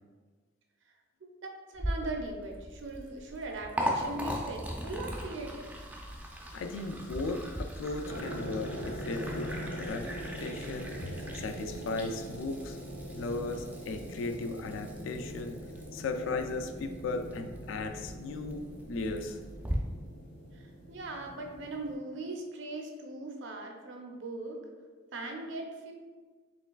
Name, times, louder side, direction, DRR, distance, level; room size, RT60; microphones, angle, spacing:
voice 1, 1.4-5.7 20.5-24.6 25.1-25.9, right 2 dB, 70° right, 2 dB, 0.5 m, -39 dB
Liquid, 1.7-19.7, equal, 10° right, 0.3 m, -40 dB
voice 2, 6.5-10.1 10.4-12.8 13.1-15.6 15.9-19.4, left 3 dB, 80° left, 6 dB, 0.3 m, -36 dB
sound 1, 8.0-22.0, equal, 55° left, 1.5 m, -42 dB
4.3 x 3.2 x 2.3 m, 1.4 s
head